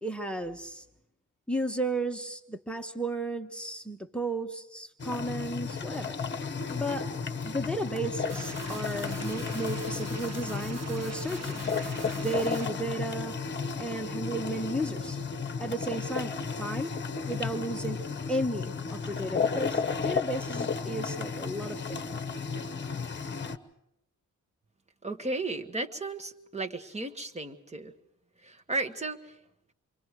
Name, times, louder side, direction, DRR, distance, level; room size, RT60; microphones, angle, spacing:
voice 1, 0.0-0.8 1.5-6.2 6.7-7.1 7.4-11.6 12.0-13.4 13.8-15.2 15.6-16.9 17.3-18.0 18.3-22.2, right 1 dB, 5° left, 7 dB, 1.3 m, -34 dB
sound 1, 5.0-23.6, left 5 dB, 40° left, 1.1 m, -33 dB
sound 2, 8.3-12.7, right 5 dB, 60° right, 1.5 m, -43 dB
voice 2, 25.0-27.9 28.4-29.3, right 2 dB, 20° right, 5 dB, 1.5 m, -34 dB
28.5 x 24.0 x 4.8 m, 0.80 s
wide cardioid pair, 125°, 30 cm